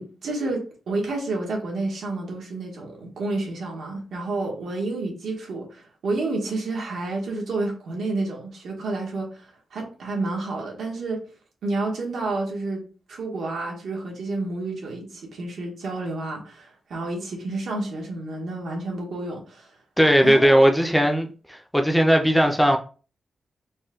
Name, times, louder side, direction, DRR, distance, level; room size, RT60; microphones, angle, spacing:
voice 1, 0.0-11.2 11.6-19.7 20.2-20.6, right 2 dB, 85° right, 1.2 m, -30 dB
voice 2, 20.0-22.8, equal, ahead, 0.4 m, -18 dB
4.1 x 2.2 x 3.7 m
wide cardioid pair, 160°, 0 cm